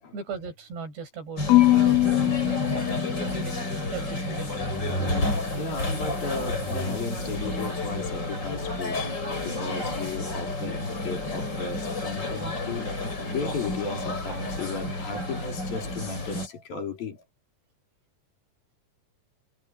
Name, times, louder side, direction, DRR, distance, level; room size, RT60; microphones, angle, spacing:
voice 1, 0.1-2.8 3.1-3.6 3.9-4.6, right 5 dB, 80° right, 8.9 m, -37 dB
sound 1, 1.4-16.5, left 2 dB, 25° left, 6.5 m, -31 dB
Marimba xylophone / Wood, 1.5-3.7, left 17 dB, 75° left, 2.5 m, -22 dB
sound 2, 3.1-15.3, right 2 dB, 40° right, 5.7 m, -42 dB
voice 2, 5.1-9.0 9.4-17.2, left 4 dB, 60° left, 6.5 m, -35 dB
omnidirectional pair, 4.8 m